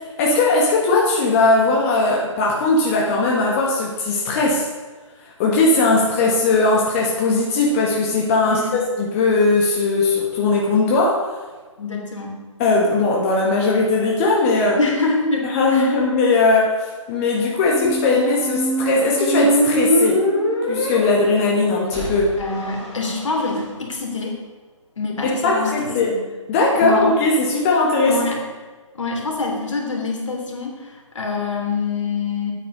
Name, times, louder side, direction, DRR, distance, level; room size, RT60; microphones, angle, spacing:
voice 1, 0.2-4.7 5.2-11.3 12.6-14.8 15.5-20.2 20.6-22.3 25.2-26.1 26.5-28.3, left 3 dB, 25° left, -2 dB, 1.5 m, -19 dB
voice 2, 8.4-8.8 11.8-12.4 14.8-16.0 22.4-24.4 25.0-26.2 26.7-27.1 28.1-28.4 28.9-32.5, left 3 dB, 65° left, 0 dB, 3.1 m, -25 dB
Squeak, 17.6-23.6, equal, 5° left, 3.3 m, -23 dB
9.1 x 9.0 x 5.4 m, 1.4 s
figure-of-eight pair, 140°, 17 cm